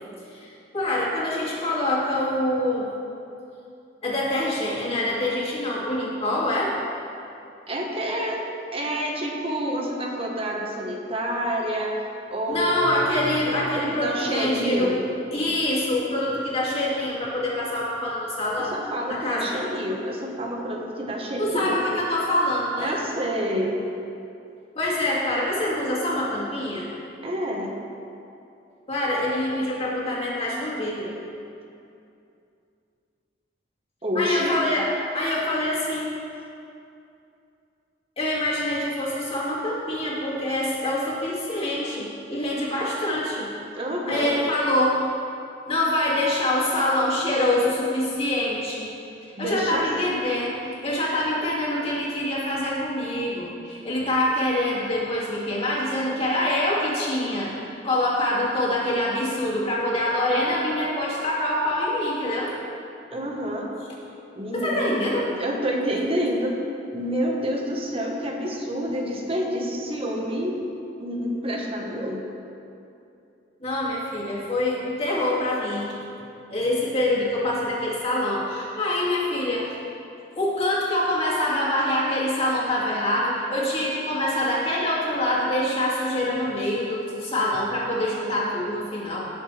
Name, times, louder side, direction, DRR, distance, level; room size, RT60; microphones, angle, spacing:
voice 1, 0.3-2.9 4.0-6.7 12.5-15.0 15.3-18.8 19.1-19.7 21.4-22.9 24.7-26.9 28.9-31.1 34.1-34.9 35.1-36.1 38.2-43.5 44.1-45.0 45.7-48.9 49.2-57.5 57.8-62.5 64.5-65.3 73.6-75.9 76.5-79.9 80.4-89.3, left 1 dB, 35° left, -6 dB, 2.6 m, -25 dB
voice 2, 7.7-8.4 8.7-11.9 12.3-12.9 13.7-15.0 18.5-21.9 22.8-23.8 27.2-27.7 34.0-34.6 43.8-44.4 49.3-49.9 63.1-63.7 64.3-65.0 65.3-66.6 66.9-70.6 71.0-72.2, equal, 30° right, -1 dB, 1.5 m, -28 dB
18.5 x 7.1 x 3.5 m, 2.6 s
head